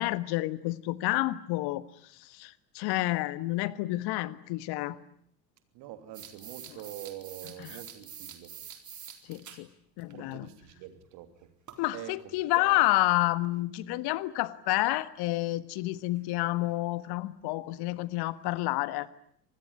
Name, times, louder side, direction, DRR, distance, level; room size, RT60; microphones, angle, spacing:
voice 1, 0.0-5.0 7.6-7.8 9.3-9.7 10.0-10.5 11.8-19.1, left 18 dB, 55° left, 15 dB, 1.6 m, -29 dB
voice 2, 5.7-8.5 10.1-11.5 11.9-12.2 12.4-12.8, right 12 dB, 55° right, 9 dB, 3.1 m, -45 dB
sound 1, 6.1-9.6 10.0-10.1 11.7-11.9 13.0-13.1 16.2-16.3 16.5-16.6 17.1-17.2 17.7-17.8 18.3-18.4, right 8 dB, 35° right, 4.1 m, -46 dB
26.0 x 20.0 x 9.9 m, 0.69 s
figure-of-eight pair, 65°, 48 cm